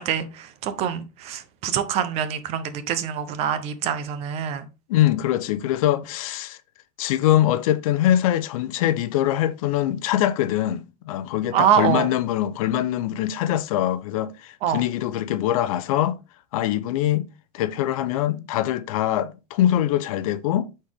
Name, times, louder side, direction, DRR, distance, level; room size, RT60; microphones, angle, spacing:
voice 1, 0.0-4.7 11.5-12.1 14.6-14.8, right 9 dB, 35° right, 0.8 m, -25 dB
voice 2, 4.9-6.6 7.0-16.2 16.5-17.3 17.5-20.7, left 12 dB, 65° left, 0.7 m, -23 dB
8.1 x 4.4 x 3.5 m
supercardioid pair, 170°, 19 cm